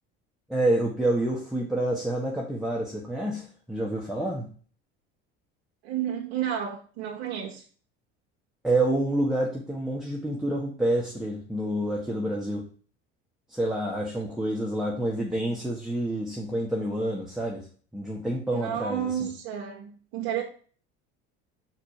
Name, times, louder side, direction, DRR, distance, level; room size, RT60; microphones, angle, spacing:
voice 1, 0.5-4.5 8.6-12.6 13.5-17.7 17.9-19.3, right 1 dB, ahead, -3 dB, 1.6 m, -28 dB
voice 2, 5.8-7.6 18.5-20.4, right 9 dB, 80° right, -2 dB, 1.4 m, -31 dB
6.0 x 5.0 x 4.9 m, 0.42 s
supercardioid pair, 80°, 31 cm